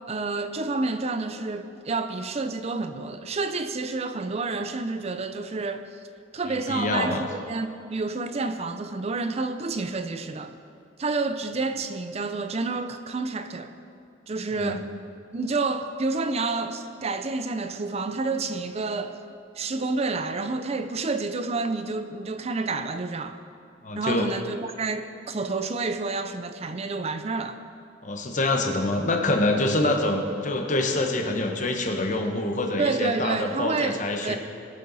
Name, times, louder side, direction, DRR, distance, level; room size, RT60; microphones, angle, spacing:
voice 1, 0.1-6.0 6.3-10.5 11.0-13.7 14.3-14.9 15.3-19.2 19.6-23.4 23.9-27.6 32.8-34.4, right 3 dB, 35° right, 0.5 m, -29 dB
voice 2, 6.5-7.2 14.5-14.8 23.8-24.3 28.0-34.4, left 2 dB, 45° left, 1.1 m, -26 dB
20.0 x 6.8 x 4.1 m
head